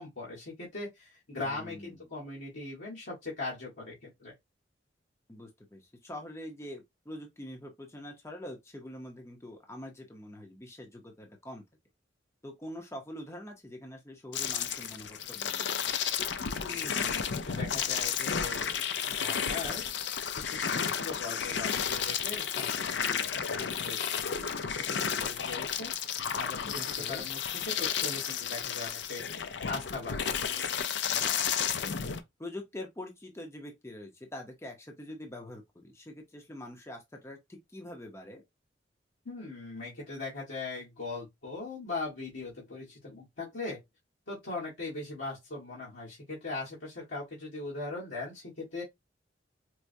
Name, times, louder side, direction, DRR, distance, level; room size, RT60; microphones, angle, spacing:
voice 1, 0.0-4.3 16.7-18.8 19.1-19.8 20.3-24.1 24.9-25.9 26.4-27.4 27.8-29.2 29.7-30.3 39.2-43.8 44.3-48.8, left 3 dB, 90° left, 1.5 m, -40 dB
voice 2, 1.5-2.0 5.3-11.6 12.4-15.9 26.8-27.2 31.1-32.1 32.4-38.4, left 1 dB, 15° left, 0.6 m, -45 dB
sound 1, 14.3-32.2, left 7 dB, 70° left, 0.5 m, -32 dB
4.5 x 2.1 x 2.6 m
head